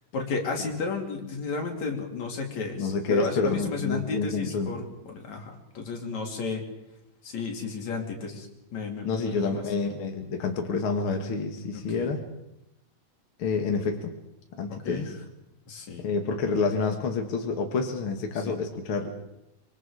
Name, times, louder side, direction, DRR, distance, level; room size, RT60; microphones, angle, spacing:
voice 1, 0.1-6.6 7.2-8.5 8.7-9.6 11.7-12.1 14.9-15.1 15.7-16.0 18.3-18.6, left 4 dB, 70° left, 1 dB, 4.1 m, -33 dB
voice 2, 2.8-4.8 9.0-12.2 13.4-14.1 14.6-15.1 16.0-19.1, left 4 dB, 50° left, 3 dB, 2.3 m, -28 dB
25.5 x 24.0 x 4.9 m, 0.85 s
omnidirectional pair, 3.3 m